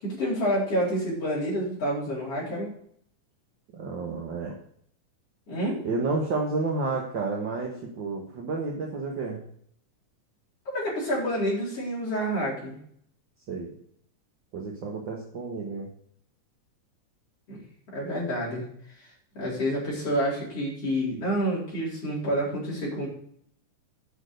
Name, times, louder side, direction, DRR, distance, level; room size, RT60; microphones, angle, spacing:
voice 1, 0.0-2.7 5.5-5.8 10.7-12.8 17.5-17.6 17.9-18.6 19.0-19.1 19.3-23.1, equal, 45° left, -5 dB, 5.1 m, -28 dB
voice 2, 3.8-4.5 5.8-9.4 13.5-13.7 14.5-15.9, right 3 dB, 50° right, -1 dB, 1.6 m, -30 dB
9.1 x 6.1 x 6.6 m, 0.64 s
omnidirectional pair, 3.7 m